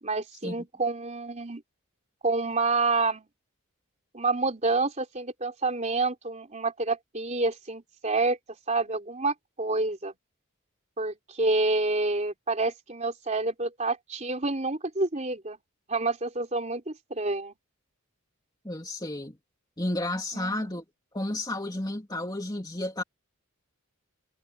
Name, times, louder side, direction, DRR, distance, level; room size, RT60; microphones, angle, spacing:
voice 1, 0.0-1.6 2.2-3.3 4.1-8.4 8.7-10.1 11.0-15.6 15.9-17.5 20.3-20.7, right 3 dB, 30° right, 3.6 m, -28 dB
voice 2, 18.6-19.4 19.8-20.8 21.1-23.0, left 1 dB, 20° left, 2.8 m, -32 dB
head